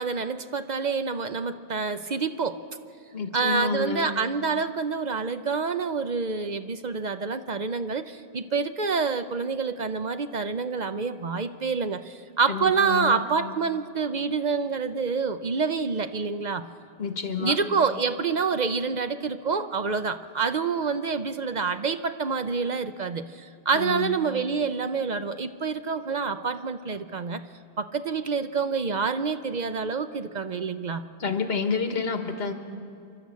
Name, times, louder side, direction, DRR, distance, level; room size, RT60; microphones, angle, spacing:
voice 1, 0.0-2.6 3.3-16.6 17.4-27.4 27.8-31.0, right 5 dB, 50° right, 10 dB, 0.7 m, -27 dB
voice 2, 3.1-4.1 12.5-13.2 17.0-17.6 23.7-24.2 31.2-32.5, left 5 dB, 75° left, 7 dB, 1.6 m, -29 dB
28.0 x 12.0 x 8.3 m, 2.4 s
omnidirectional pair, 1.0 m